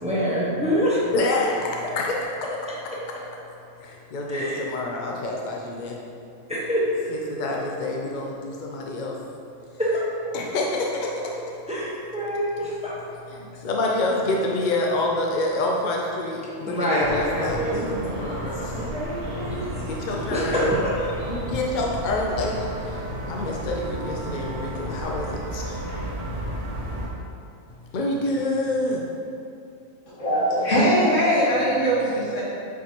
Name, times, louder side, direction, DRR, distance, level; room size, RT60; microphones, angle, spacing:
voice 1, 0.0-1.0 4.3-4.6 6.5-6.8 9.8-9.9 11.7-12.9 16.6-19.6 20.3-20.9 21.2-21.3, equal, 5° right, -7 dB, 1.0 m, -26 dB
voice 2, 1.1-1.5 2.0-2.2 4.1-5.9 7.1-8.3 8.7-9.1 10.3-10.9 13.6-18.1 19.4-19.6 19.9-20.7 21.3-22.6 23.3-25.2 25.5-25.6 27.9-29.0, left 2 dB, 55° left, -1 dB, 0.5 m, -27 dB
sound 1, 17.0-27.1, right 1 dB, 70° right, 1.5 m, -32 dB
voice 3, 30.1-32.4, equal, 70° left, -9 dB, 2.1 m, -21 dB
8.1 x 4.5 x 2.9 m, 2.6 s
omnidirectional pair, 1.4 m